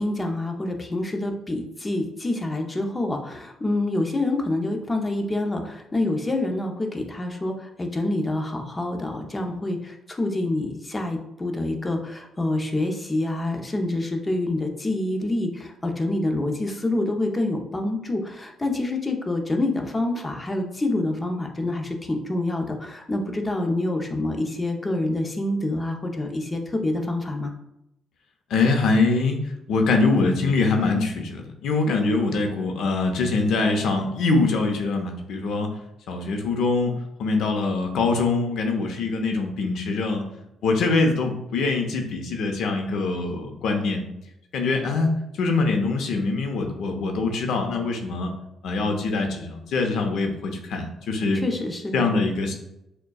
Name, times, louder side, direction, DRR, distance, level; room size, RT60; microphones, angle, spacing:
voice 1, 0.0-27.5 51.4-52.1, left 2 dB, 20° left, 3 dB, 0.7 m, -27 dB
voice 2, 28.5-35.7 36.1-40.2 40.6-44.0 44.5-48.3 48.6-51.4 51.9-52.5, left 3 dB, 75° left, 4 dB, 0.7 m, -23 dB
6.5 x 2.3 x 2.3 m, 0.86 s
cardioid pair, 90°, 0 cm